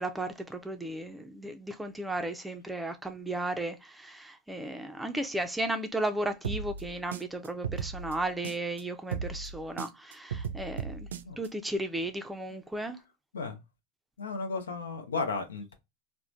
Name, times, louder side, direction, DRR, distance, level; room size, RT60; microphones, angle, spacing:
voice 1, 0.0-11.1 11.4-13.0, right 1 dB, 5° right, 0.4 m, -34 dB
sound 1, 6.4-8.8 9.1-11.5, right 6 dB, 80° right, 0.3 m, -36 dB
voice 2, 14.2-15.7, left 4 dB, 90° left, 0.5 m, -34 dB
3.0 x 2.1 x 2.4 m
hypercardioid pair, 100°, 0 cm